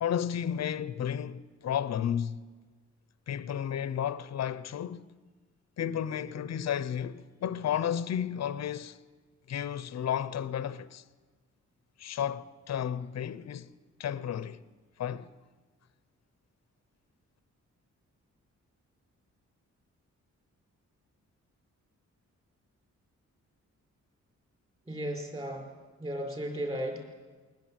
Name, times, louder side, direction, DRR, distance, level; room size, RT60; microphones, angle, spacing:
voice 1, 0.0-2.4 3.3-5.1 5.8-9.0 9.5-11.0 12.0-13.7 14.0-14.6 15.0-15.3, left 9 dB, 60° left, 0.7 m, -32 dB
voice 2, 24.9-25.7 26.0-27.0, equal, 20° right, 5.2 m, -35 dB
22.5 x 19.0 x 9.0 m
wide cardioid pair, 150°, 30 cm